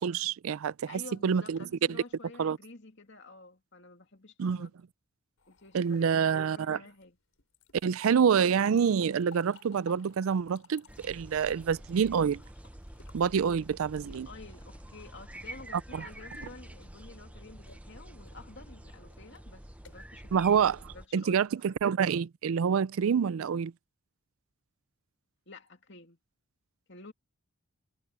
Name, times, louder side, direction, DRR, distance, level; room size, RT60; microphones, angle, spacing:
voice 1, 0.0-1.6 2.4-2.6 4.4-4.7 5.7-6.8 7.8-12.4 13.1-14.3 15.9-16.1 20.3-23.7, right 7 dB, 70° right, 0.4 m, -27 dB
voice 2, 0.9-4.7 5.5-7.2 14.1-20.6 20.9-21.8 25.5-26.2 26.9-27.1, left 3 dB, 55° left, 2.6 m, -50 dB
sound 1, 5.4-14.0 15.8-21.5, left 5 dB, 70° left, 4.4 m, -59 dB
sound 2, 10.9-21.1, right 1 dB, 5° right, 0.5 m, -48 dB
sound 3, 11.6-16.5, left 1 dB, 20° left, 2.8 m, -60 dB
head